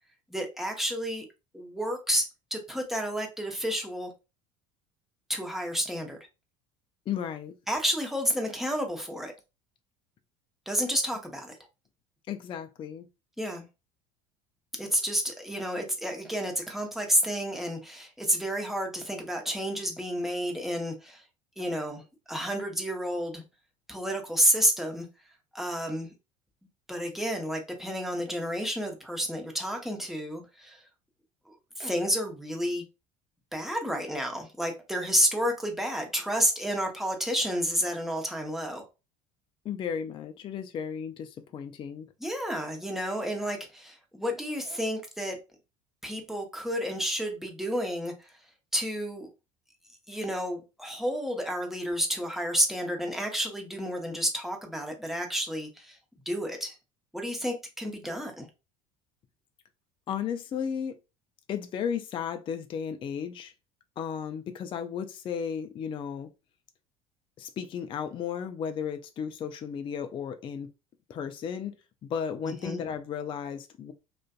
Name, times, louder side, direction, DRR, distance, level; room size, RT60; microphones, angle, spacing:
voice 1, 0.3-1.3 1.5-4.1 5.3-6.2 7.7-9.3 10.7-11.6 13.4-13.6 14.8-21.2 21.6-23.4 23.9-25.1 25.5-26.1 26.9-30.8 31.5-32.9 33.5-38.9 42.2-45.4 46.0-48.4 48.7-49.3 50.1-56.0 56.3-56.8 57.1-58.5 72.4-72.8, equal, ahead, 0.7 m, -30 dB
voice 2, 7.1-7.5 12.3-13.1 39.6-42.1 60.1-61.0 61.5-63.5 64.0-66.3 67.4-70.7 71.1-71.7 72.0-73.9, left 7 dB, 30° left, 0.3 m, -34 dB
2.4 x 2.4 x 2.2 m
hypercardioid pair, 70°, 18 cm